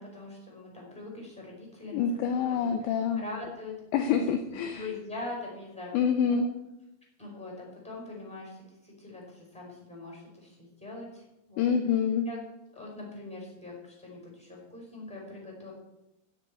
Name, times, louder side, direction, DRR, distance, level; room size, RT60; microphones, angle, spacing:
voice 1, 0.0-2.1 2.5-3.7 4.2-6.4 7.2-11.7 12.2-12.4 12.7-15.7, left 2 dB, ahead, -2 dB, 4.8 m, -43 dB
voice 2, 1.9-3.2 3.9-4.8 5.9-6.5 11.6-12.3, left 7 dB, 75° left, 7 dB, 2.7 m, -26 dB
13.0 x 7.4 x 9.3 m, 0.91 s
omnidirectional pair, 5.9 m